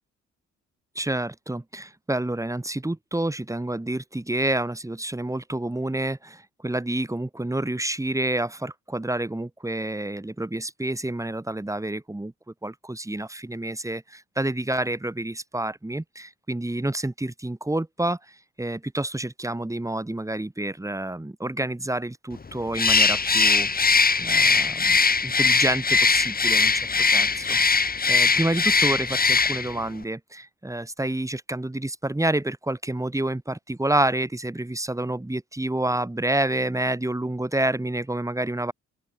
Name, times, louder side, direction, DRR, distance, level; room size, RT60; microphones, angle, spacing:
voice 1, 1.0-12.3 12.6-23.7 24.2-38.7, right 1 dB, 10° right, 5.3 m, -28 dB
Bird, 22.7-29.8, left 4 dB, 30° left, 3.9 m, -21 dB
open air
cardioid pair, 90°, 30 cm